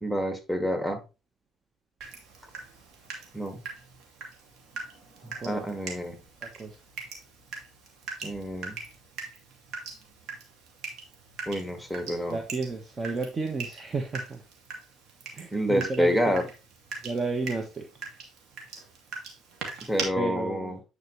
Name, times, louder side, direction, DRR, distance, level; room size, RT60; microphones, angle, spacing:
voice 1, 0.0-1.0 3.3-3.6 5.2-6.2 8.2-8.8 11.5-12.4 15.5-16.5 19.9-20.8, equal, 5° right, 6 dB, 1.9 m, -28 dB
Water tap faucet / Drip, 2.0-20.0, right 4 dB, 70° right, 2.4 m, -42 dB
voice 2, 6.4-6.8 12.3-14.4 15.3-16.4 17.0-17.9 20.1-20.8, right 3 dB, 35° right, 4 dB, 1.3 m, -32 dB
9.3 x 4.9 x 3.2 m, 0.29 s
supercardioid pair, 70°, 0 cm